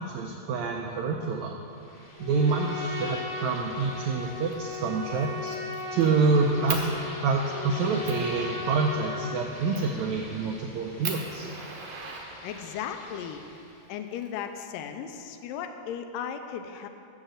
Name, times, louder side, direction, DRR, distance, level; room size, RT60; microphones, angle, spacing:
voice 1, 0.0-1.6 2.2-5.5 5.9-11.5, right 4 dB, 85° right, 1 dB, 1.6 m, -27 dB
sound 1, 1.7-13.9, left 1 dB, 35° left, 0.7 m, -46 dB
Trumpet, 2.2-9.5, left 4 dB, 65° left, 1.4 m, -37 dB
Fire, 4.5-4.8 5.2-6.1 6.7-6.9 7.5-7.6 8.1-8.3 9.7-10.0 10.5-10.6 11.0-12.8 13.9-14.8, right 6 dB, 70° right, 1.6 m, -37 dB
voice 2, 12.4-13.5 13.9-16.9, left 8 dB, 85° left, 7 dB, 2.2 m, -36 dB
7.3 x 6.4 x 7.6 m, 2.6 s
omnidirectional pair, 3.9 m